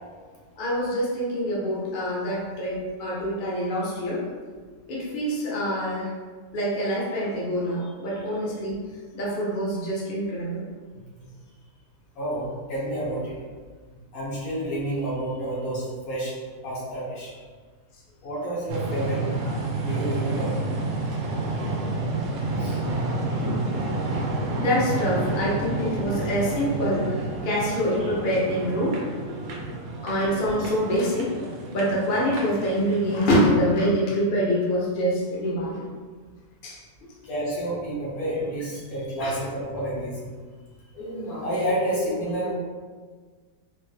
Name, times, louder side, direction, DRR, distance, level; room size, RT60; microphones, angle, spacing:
voice 1, 0.6-4.2 4.9-6.1 6.5-8.8 9.1-10.6 24.5-27.1 27.4-29.0 29.3-29.4 30.0-31.3 31.7-35.8 36.6-36.8 39.2-39.3, equal, 45° left, -5 dB, 0.7 m, -25 dB
voice 2, 12.2-13.3 14.1-16.3 16.6-17.3 18.2-19.5 19.8-20.6 22.6-22.8 29.5-29.7 30.0-30.1 37.2-40.2 40.9-42.5, right 1 dB, 65° left, -6 dB, 1.5 m, -30 dB
sound 1, 18.7-33.3, right 2 dB, 75° right, 1.0 m, -29 dB
4.1 x 2.0 x 3.2 m, 1.5 s
omnidirectional pair, 1.6 m